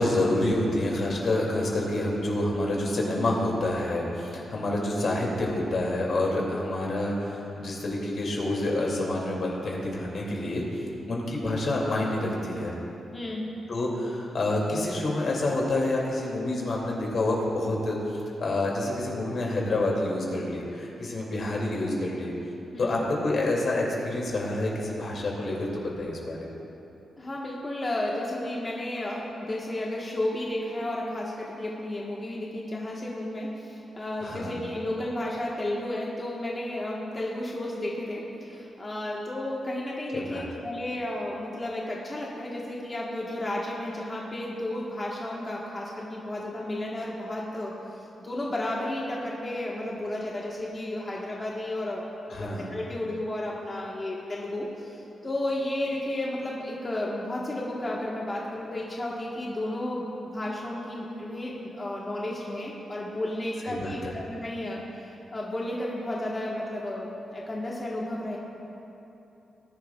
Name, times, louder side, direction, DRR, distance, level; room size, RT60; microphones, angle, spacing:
voice 1, 0.0-12.7 13.7-22.3 22.8-26.5 34.2-34.6 40.1-40.4 52.3-52.7 63.6-64.1, left 1 dB, 55° left, -2 dB, 2.6 m, -28 dB
voice 2, 13.1-13.5 22.7-22.9 27.2-47.7 48.2-55.0 55.2-64.0 64.3-68.4, left 1 dB, 25° left, -4 dB, 1.4 m, -33 dB
19.5 x 11.0 x 2.4 m, 2.9 s
wide cardioid pair, 125°, 0 cm